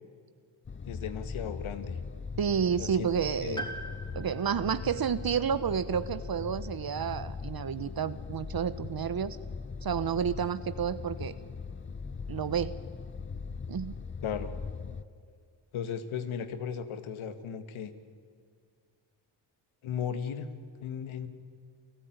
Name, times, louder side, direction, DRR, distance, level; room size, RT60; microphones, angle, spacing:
sound 1, 0.7-15.0, left 5 dB, 25° left, 0.8 m, -40 dB
voice 1, 0.9-2.0 2.8-3.1 3.4-3.7 14.2-14.5 15.7-17.9 19.8-20.5 20.8-21.3, left 7 dB, 75° left, 10 dB, 1.9 m, -36 dB
voice 2, 2.4-3.6 4.1-9.4 9.8-11.3 12.3-12.7 13.7-13.9, right 7 dB, 45° right, 14 dB, 1.0 m, -30 dB
Piano, 3.6-7.7 8.9-9.0, right 1 dB, 10° left, 3.5 m, -45 dB
28.5 x 14.0 x 9.4 m, 2.1 s
supercardioid pair, 55°, 49 cm